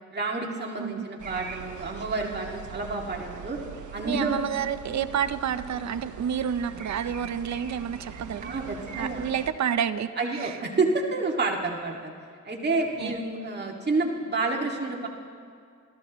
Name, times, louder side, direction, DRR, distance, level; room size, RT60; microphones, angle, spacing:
voice 1, 0.1-3.6 3.9-4.4 8.4-9.2 10.2-12.1 12.5-15.1, right 3 dB, 35° right, -1 dB, 2.2 m, -29 dB
sound 1, 1.2-9.5, right 7 dB, 85° right, 1.1 m, -42 dB
voice 2, 4.0-8.5 9.0-10.6 13.0-13.2, right 8 dB, 70° right, 12 dB, 0.7 m, -29 dB
28.0 x 13.5 x 3.1 m, 2.3 s
cardioid pair, 90°, 29 cm